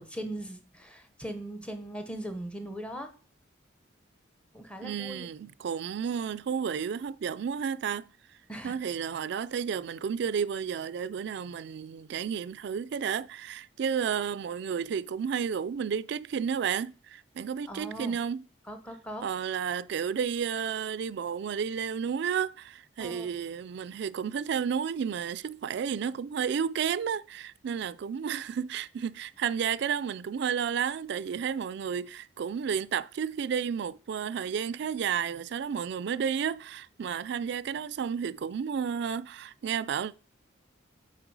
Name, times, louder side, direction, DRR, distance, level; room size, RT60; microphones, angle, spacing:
voice 1, 0.0-3.1 4.5-5.3 8.5-8.7 17.7-18.2 18.7-19.3 23.0-23.3, right 1 dB, 5° left, 0.8 m, -39 dB
voice 2, 4.8-8.1 8.6-18.4 19.2-40.1, right 7 dB, 60° right, 0.3 m, -32 dB
7.6 x 4.4 x 4.7 m
head